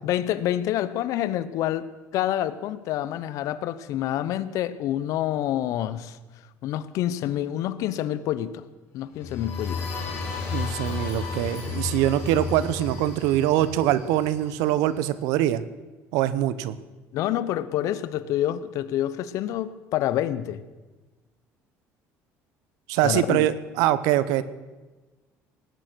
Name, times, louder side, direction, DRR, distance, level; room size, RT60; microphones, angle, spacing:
voice 1, 0.0-1.9 2.1-6.2 6.6-8.7 8.9-9.9 17.1-20.6 23.0-23.5, left 12 dB, 65° left, 15 dB, 0.8 m, -27 dB
sound 1, 9.1-14.9, left 4 dB, 40° left, 5.0 m, -33 dB
voice 2, 10.5-15.6 16.1-16.8 22.9-24.4, right 13 dB, 85° right, 16 dB, 0.8 m, -23 dB
18.5 x 9.1 x 6.2 m, 1.2 s
cardioid pair, 130°, 6 cm